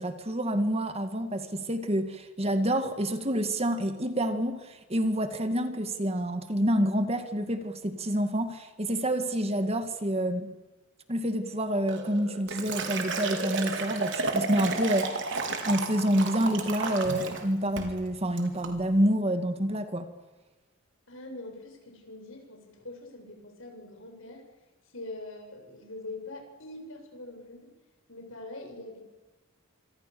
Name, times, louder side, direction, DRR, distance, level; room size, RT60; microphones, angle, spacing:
voice 1, 0.0-10.5 11.1-15.4 15.7-20.1, equal, 30° right, 8 dB, 2.1 m, -28 dB
Liquid, 11.9-17.4 17.8-18.0 18.4-18.7, right 3 dB, 55° right, 4.3 m, -32 dB
voice 2, 21.1-24.4 24.9-27.7 28.1-29.0, left 2 dB, 65° left, 4 dB, 7.5 m, -43 dB
26.5 x 26.0 x 7.0 m, 1.2 s
head